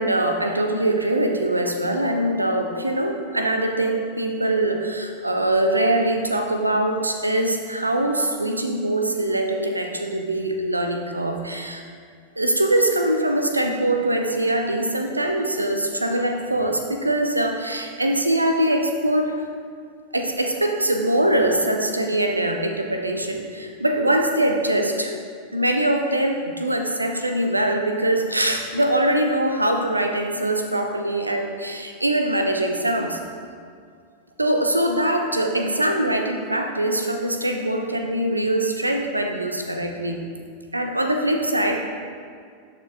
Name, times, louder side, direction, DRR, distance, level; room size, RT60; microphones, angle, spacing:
voice 1, 0.0-11.8 12.4-19.4 20.1-25.1 25.5-33.2 34.4-40.2 40.7-41.8, right 1 dB, 85° right, 4 dB, 0.6 m, -23 dB
13.5 x 4.5 x 2.5 m, 2.1 s
figure-of-eight pair, 90°, 0 cm